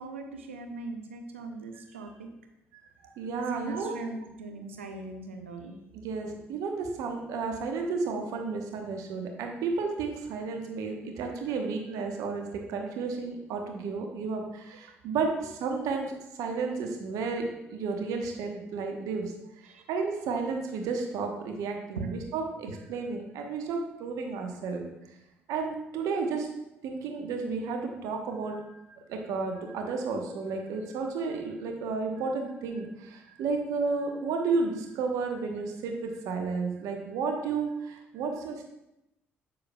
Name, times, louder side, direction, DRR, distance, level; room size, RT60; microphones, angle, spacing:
voice 1, 0.0-2.3 3.3-5.7 15.3-15.4 19.7-19.8 21.9-22.1, right 3 dB, 80° right, 5 dB, 0.6 m, -39 dB
voice 2, 3.2-3.9 5.9-16.1 16.4-17.4 17.7-19.3 19.9-24.8 25.5-26.5 26.8-38.7, right 4 dB, 60° right, 3 dB, 1.0 m, -32 dB
8.4 x 6.7 x 2.3 m, 0.89 s
figure-of-eight pair, 45°, 7 cm